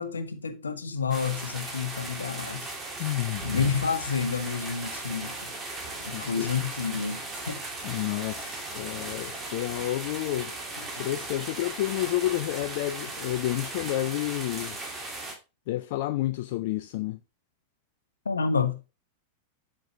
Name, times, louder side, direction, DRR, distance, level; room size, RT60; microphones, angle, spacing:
voice 1, 0.0-2.7 3.4-5.5 6.0-7.6 10.8-10.9 18.2-18.8, left 5 dB, 75° left, 0.9 m, -29 dB
sound 1, 1.1-15.3, right 2 dB, 20° right, 2.3 m, -37 dB
voice 2, 3.0-3.7 6.1-6.5 7.8-10.5 11.0-14.8 15.7-17.2, left 15 dB, 50° left, 0.3 m, -30 dB
7.8 x 6.5 x 2.8 m
figure-of-eight pair, 90°, 0 cm